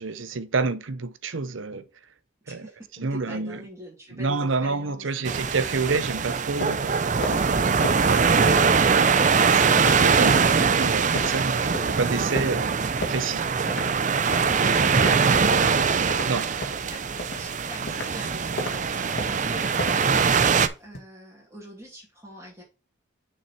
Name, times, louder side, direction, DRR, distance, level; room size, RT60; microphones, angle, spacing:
voice 1, 0.0-1.8 2.5-3.6 4.1-7.4 8.0-8.7 9.4-12.8 13.1-13.5 16.3-16.5, right 4 dB, 75° right, 0.7 m, -29 dB
voice 2, 2.5-5.4 7.6-8.0 13.7-13.9 14.4-16.4 16.9-22.6, equal, 15° right, 2.7 m, -43 dB
sound 1, 5.3-20.7, right 5 dB, 40° right, 0.5 m, -22 dB
sound 2, 5.9-15.8 16.1-18.2 18.6-18.8 19.2-21.0, left 1 dB, 55° left, 1.9 m, -36 dB
6.6 x 5.5 x 4.3 m
head